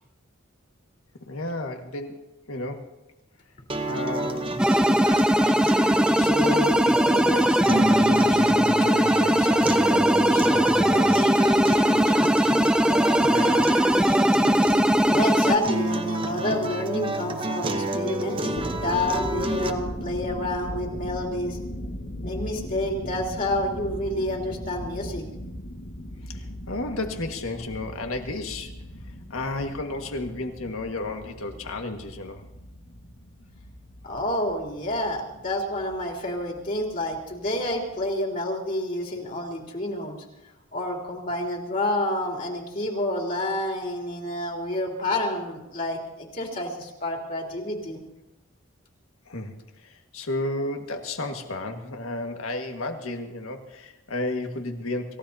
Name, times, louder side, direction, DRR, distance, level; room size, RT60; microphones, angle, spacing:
voice 1, 1.3-2.2 2.5-2.9 3.9-4.6 6.2-12.3 12.8-13.8 26.3-32.4 49.3-55.2, left 2 dB, 85° left, 4 dB, 1.8 m, -33 dB
sound 1, 3.7-19.7, right 1 dB, 25° right, 0.9 m, -30 dB
sound 2, 4.6-15.6, equal, 5° right, 0.5 m, -20 dB
voice 2, 15.1-21.6 22.2-25.3 34.0-40.2 40.7-48.0, left 1 dB, 40° left, -1 dB, 3.2 m, -29 dB
sound 3, 18.5-38.0, left 1 dB, 70° left, 1.9 m, -38 dB
27.5 x 15.5 x 2.8 m, 0.96 s
head